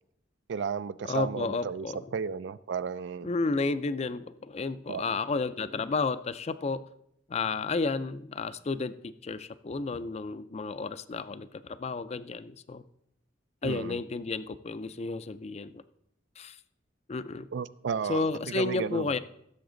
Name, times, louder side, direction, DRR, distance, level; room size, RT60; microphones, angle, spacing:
voice 1, 0.5-3.3 4.9-5.0 13.6-14.0 17.5-19.1, right 6 dB, 65° right, 0.4 m, -33 dB
voice 2, 1.0-2.0 3.2-6.8 7.3-12.8 13.6-15.8 16.4-16.6 17.1-17.5 18.1-19.2, left 3 dB, 35° left, 0.4 m, -32 dB
15.0 x 7.0 x 3.9 m
head